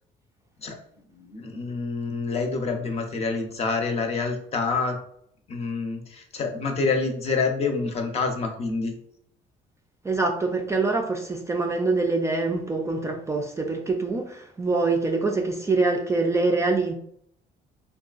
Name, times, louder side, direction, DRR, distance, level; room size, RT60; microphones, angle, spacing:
voice 1, 1.1-5.0 5.5-8.9, left 4 dB, 40° left, 0.6 m, -27 dB
voice 2, 10.0-16.9, right 3 dB, 15° right, 0.3 m, -25 dB
3.6 x 2.3 x 2.4 m
cardioid pair, 110°, 17 cm